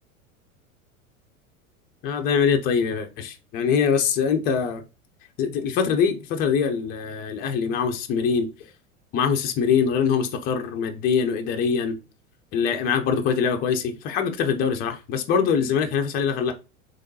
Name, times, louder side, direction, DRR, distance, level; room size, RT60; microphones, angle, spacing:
voice 1, 2.0-4.8 5.4-8.5 9.1-12.0 12.5-16.5, left 6 dB, 20° left, 0.4 m, -23 dB
3.5 x 3.1 x 2.7 m
figure-of-eight pair, 85°, 43 cm